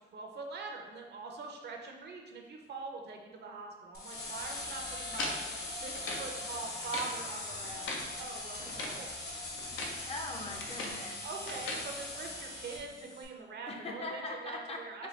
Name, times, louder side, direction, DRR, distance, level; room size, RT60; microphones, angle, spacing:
voice 1, 0.1-9.1 11.2-15.1, right 4 dB, 55° right, 2 dB, 0.6 m, -43 dB
sound 1, 3.9-13.2, left 2 dB, 55° left, 0.9 m, -41 dB
sound 2, 5.1-6.3 6.7-7.2 7.6-8.1 8.6-9.0 9.6-10.0 10.3-11.0 11.5-11.9, left 2 dB, 85° left, 0.6 m, -39 dB
voice 2, 10.1-11.2 13.7-15.1, left 2 dB, 30° left, 2 dB, 0.5 m, -41 dB
4.3 x 2.2 x 3.1 m, 1.3 s
cardioid pair, 90°, 20 cm